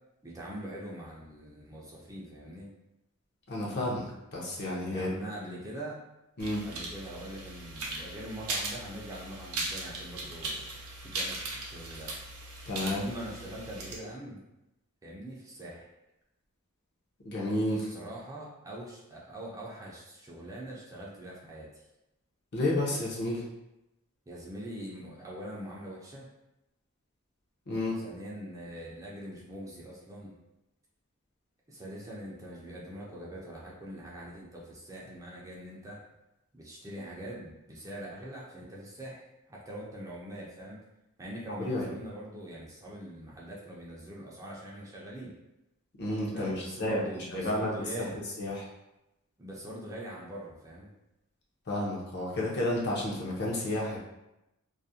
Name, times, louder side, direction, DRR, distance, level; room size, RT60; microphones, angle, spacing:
voice 1, 0.2-2.7 4.9-6.0 6.7-12.2 12.8-14.4 15.0-15.9 17.7-21.7 24.3-26.3 28.0-30.3 31.7-36.0 36.5-40.8 41.2-45.3 46.3-48.2 49.4-50.9, right 1 dB, 15° right, -5 dB, 0.4 m, -43 dB
voice 2, 3.5-5.1 5.5-5.6 6.4-6.7 12.7-13.0 17.2-17.9 22.5-23.5 27.7-28.0 41.6-41.9 46.0-47.0 47.3-48.1 48.4-48.7 51.7-54.0, left 1 dB, 50° left, -4 dB, 0.6 m, -31 dB
sound 1, 6.4-14.0, right 2 dB, 85° right, 0.6 m, -38 dB
2.4 x 2.1 x 2.6 m, 0.92 s
head